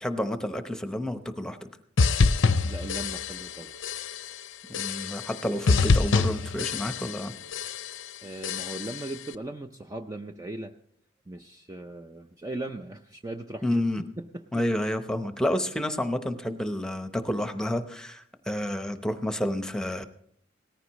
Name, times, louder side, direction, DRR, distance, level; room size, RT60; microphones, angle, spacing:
voice 1, 0.0-1.6 4.8-7.3 13.6-14.0 14.5-20.0, left 1 dB, 5° left, 8 dB, 0.9 m, -29 dB
sound 1, 2.0-3.6 3.8-4.3 4.7-5.4 5.7-7.2 7.5-8.0 8.4-9.1, left 4 dB, 80° left, 0.6 m, -25 dB
voice 2, 2.6-3.7 4.3-4.5 8.2-10.7 11.3-13.8 14.2-14.6, right 2 dB, 20° right, 6 dB, 0.5 m, -38 dB
18.0 x 14.5 x 3.1 m, 0.69 s
head